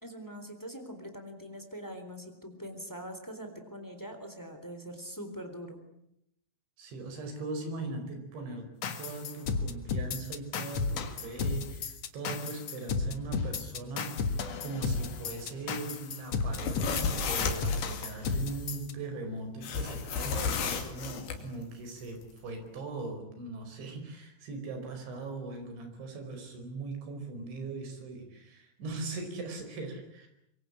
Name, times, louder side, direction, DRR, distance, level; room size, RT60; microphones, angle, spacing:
voice 1, 0.0-5.8, equal, 5° left, 7 dB, 2.5 m, -43 dB
voice 2, 6.8-30.3, right 3 dB, 60° right, 6 dB, 7.0 m, -40 dB
sound 1, 8.8-18.9, left 5 dB, 85° left, 1.4 m, -33 dB
sound 2, 16.4-18.1 19.6-21.4, left 6 dB, 55° left, 4.0 m, -32 dB
25.5 x 23.5 x 8.7 m, 0.79 s
omnidirectional pair, 5.9 m